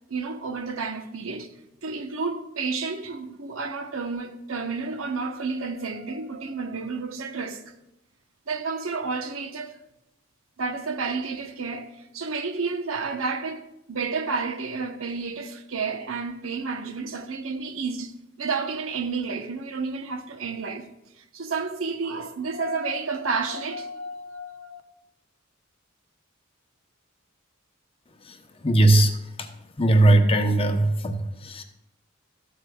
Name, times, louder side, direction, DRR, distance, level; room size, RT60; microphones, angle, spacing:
voice 1, 0.1-1.5 1.8-7.7 8.5-9.8 10.6-18.1 18.4-20.9 21.2-24.8, right 4 dB, 85° right, 0.9 m, -31 dB
voice 2, 28.6-29.1 29.8-31.1 31.4-31.6, right 2 dB, 30° left, 0.7 m, -18 dB
13.5 x 8.1 x 2.3 m
head